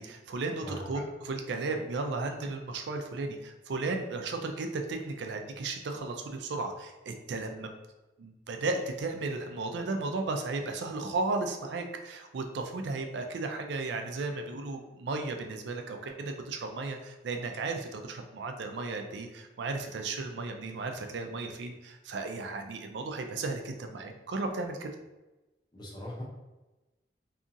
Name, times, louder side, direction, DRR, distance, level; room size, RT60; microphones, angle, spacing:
voice 1, 0.0-7.7 8.2-24.9, right 3 dB, 75° right, 5 dB, 0.4 m, -35 dB
voice 2, 25.7-26.2, equal, 25° left, -4 dB, 0.6 m, -40 dB
2.8 x 2.4 x 2.5 m, 1.1 s
head